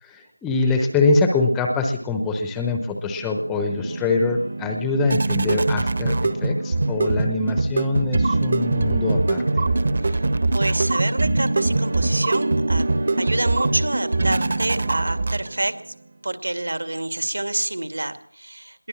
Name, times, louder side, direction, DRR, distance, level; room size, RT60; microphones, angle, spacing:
voice 1, 0.0-9.7, left 3 dB, 5° left, 4 dB, 0.9 m, -23 dB
sound 1, 3.0-15.8, right 2 dB, 35° right, 1.3 m, -23 dB
voice 2, 10.5-15.7 16.2-18.9, right 1 dB, 60° right, 10 dB, 2.3 m, -28 dB
22.0 x 16.5 x 7.2 m, 0.62 s
figure-of-eight pair, 170°, 0 cm